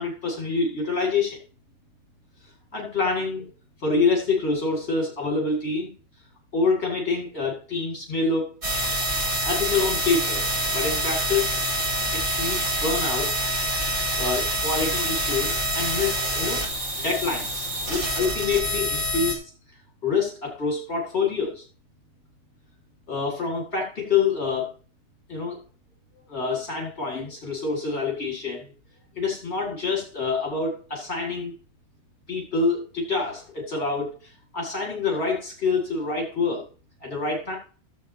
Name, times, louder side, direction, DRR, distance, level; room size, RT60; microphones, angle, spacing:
voice 1, 0.0-1.4 2.7-3.5 3.8-5.9 6.5-8.5 9.4-11.6 12.1-13.3 14.2-16.6 17.0-19.4 20.0-21.6 23.1-24.7 25.3-25.6 26.3-28.7 29.2-31.5 32.3-34.1 34.5-36.7 37.0-37.6, left 4 dB, 65° left, -1 dB, 2.4 m, -26 dB
sound 1, 8.6-19.3, right 1 dB, 50° right, 2.4 m, -26 dB
15.0 x 7.3 x 2.8 m, 0.37 s
omnidirectional pair, 1.2 m